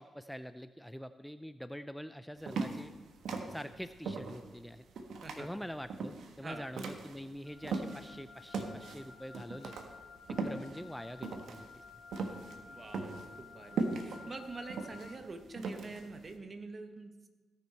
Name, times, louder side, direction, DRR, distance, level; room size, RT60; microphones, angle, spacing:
voice 1, 0.0-2.9 3.5-4.8 5.4-9.7 10.3-11.8, equal, ahead, 11 dB, 0.4 m, -45 dB
sound 1, 2.4-8.2 8.5-16.3, right 4 dB, 75° right, 1.2 m, -39 dB
Wind instrument woodwind instrument, 7.4-15.2, left 5 dB, 80° left, 3.4 m, -54 dB
voice 2, 12.7-17.3, right 3 dB, 40° right, 7 dB, 1.3 m, -46 dB
17.5 x 6.1 x 4.3 m, 1.3 s
cardioid pair, 65°, 0 cm